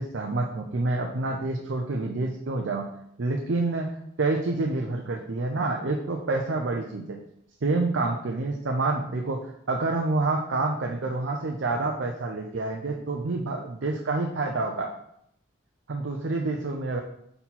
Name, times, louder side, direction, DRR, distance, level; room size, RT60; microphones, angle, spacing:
voice 1, 0.0-2.9 3.2-7.2 7.6-14.9 15.9-17.0, right 3 dB, 80° right, 2 dB, 0.6 m, -28 dB
5.5 x 4.3 x 4.1 m, 0.74 s
head